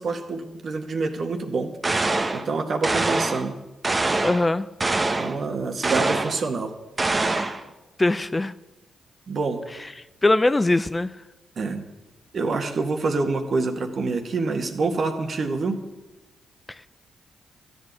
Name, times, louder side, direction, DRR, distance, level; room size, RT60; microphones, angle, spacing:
voice 1, 0.0-1.7 2.3-3.6 5.2-6.7 9.3-9.6 11.6-11.8 12.3-15.8, right 3 dB, 55° right, 5 dB, 1.9 m, -26 dB
sound 1, 1.8-2.4 2.8-3.5 3.8-4.5 4.8-5.4 5.8-6.4 7.0-7.6, right 2 dB, 30° right, 1.3 m, -24 dB
voice 2, 4.2-4.7 8.0-8.5 10.2-11.1 16.7-16.9, left 2 dB, 25° left, 14 dB, 0.6 m, -21 dB
13.0 x 8.3 x 8.4 m, 1.1 s
supercardioid pair, 50°, 0 cm